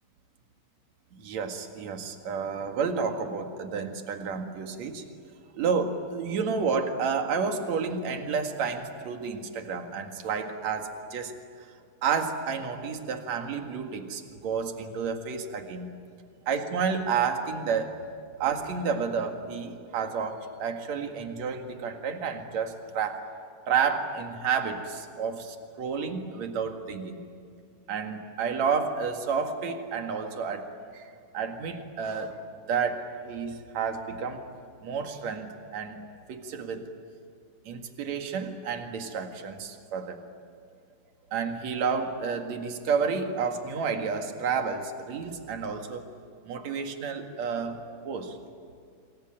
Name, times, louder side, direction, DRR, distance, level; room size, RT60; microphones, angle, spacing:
voice 1, 1.1-5.0 5.5-11.3 12.0-16.0 16.5-18.0 18.4-23.2 23.7-27.2 27.9-31.0 31.3-32.4 32.7-34.4 34.8-36.0 36.3-36.9 37.7-40.3 41.3-46.0 46.5-48.4, right 6 dB, 55° right, 5 dB, 2.9 m, -30 dB
27.5 x 23.0 x 8.9 m, 2.2 s
omnidirectional pair, 4.3 m